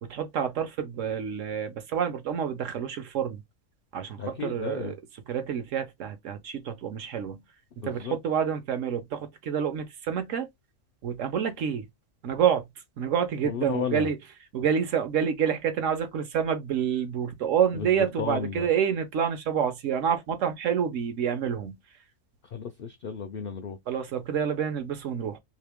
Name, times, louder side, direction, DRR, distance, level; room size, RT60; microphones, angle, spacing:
voice 1, 0.0-3.4 3.9-4.9 5.3-7.4 7.8-10.5 11.0-11.9 12.2-12.6 13.0-14.2 14.5-21.8 23.9-25.4, right 8 dB, 65° right, 1.1 m, -28 dB
voice 2, 4.2-5.0 7.8-8.2 13.4-14.1 17.7-18.7 22.4-23.8, left 6 dB, 65° left, 0.5 m, -33 dB
2.9 x 2.8 x 3.5 m
omnidirectional pair, 1.5 m